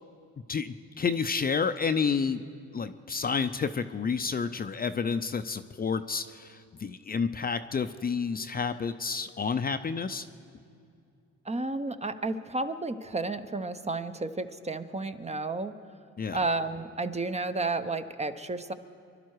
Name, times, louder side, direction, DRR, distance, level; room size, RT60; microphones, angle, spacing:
voice 1, 0.5-2.5 2.7-10.3 16.2-16.4, left 5 dB, 30° left, 10 dB, 0.5 m, -30 dB
voice 2, 11.4-15.7 16.3-18.7, right 3 dB, 20° right, 9 dB, 0.7 m, -32 dB
25.0 x 11.5 x 4.7 m, 2.4 s
cardioid pair, 90°, 30 cm